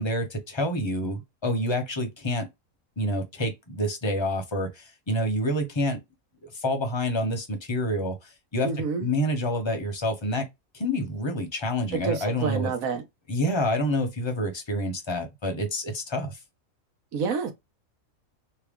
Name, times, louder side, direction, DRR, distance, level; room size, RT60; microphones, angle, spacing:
voice 1, 0.0-2.5 3.0-6.0 6.4-8.7 9.0-10.5 10.7-12.7 13.3-16.4, left 1 dB, 25° left, 0.8 m, -28 dB
voice 2, 8.6-9.1 11.9-13.0 17.1-17.5, right 5 dB, 75° right, 1.3 m, -28 dB
3.4 x 2.2 x 3.5 m
omnidirectional pair, 1.5 m